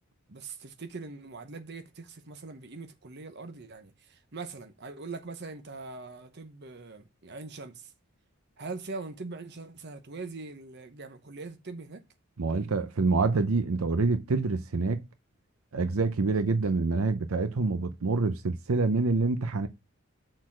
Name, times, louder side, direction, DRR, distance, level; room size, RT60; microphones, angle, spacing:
voice 1, 0.3-7.9 8.6-12.0, right 3 dB, 55° right, 1.0 m, -42 dB
voice 2, 12.4-15.0 15.7-19.7, right 3 dB, 85° right, 0.7 m, -26 dB
6.4 x 4.1 x 6.1 m
head